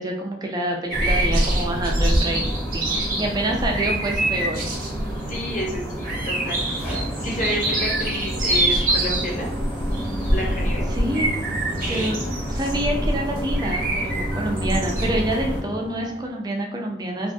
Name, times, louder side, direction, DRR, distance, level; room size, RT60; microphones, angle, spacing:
voice 1, 0.0-2.4 2.7-4.6 10.9-11.3 11.9-12.2 12.5-17.3, right 1 dB, 25° right, 1 dB, 0.4 m, -27 dB
sound 1, 0.9-15.6, right 1 dB, 55° right, 0.7 m, -24 dB
voice 2, 5.3-6.6 7.1-9.5 10.3-10.9 11.9-12.2, equal, 45° left, -2 dB, 0.6 m, -30 dB
sound 2, 6.1-16.4, equal, 10° left, 0.8 m, -34 dB
2.4 x 2.2 x 2.5 m, 0.74 s
head